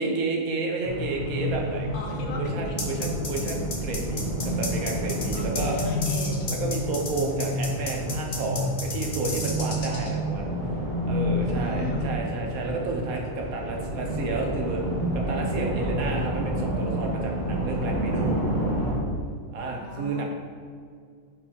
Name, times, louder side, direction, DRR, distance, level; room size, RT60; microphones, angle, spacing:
voice 1, 0.0-1.9 2.3-5.8 6.5-10.5 11.1-14.8 15.1-18.4 19.5-20.2, right 3 dB, 70° right, 1 dB, 1.2 m, -31 dB
sound 1, 0.8-19.0, equal, 35° right, 1.3 m, -29 dB
voice 2, 1.9-3.0 4.4-4.6 5.3-6.4 11.4-12.2 19.7-20.2, left 3 dB, 70° left, 0 dB, 1.4 m, -38 dB
sound 2, 2.8-10.1, left 3 dB, 50° left, 1.1 m, -33 dB
4.7 x 4.6 x 4.3 m, 2.1 s
omnidirectional pair, 1.6 m